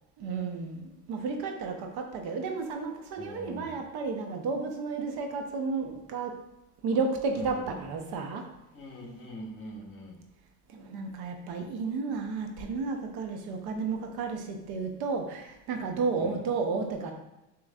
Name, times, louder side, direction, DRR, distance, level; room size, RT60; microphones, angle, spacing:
voice 1, 0.2-6.4 6.8-8.5 10.7-17.1, right 4 dB, 60° right, 4 dB, 0.8 m, -32 dB
voice 2, 3.2-3.8 7.3-7.9 8.7-10.2 16.2-16.4, equal, 30° left, -2 dB, 1.4 m, -43 dB
6.1 x 3.0 x 2.4 m, 0.91 s
supercardioid pair, 110°, 41 cm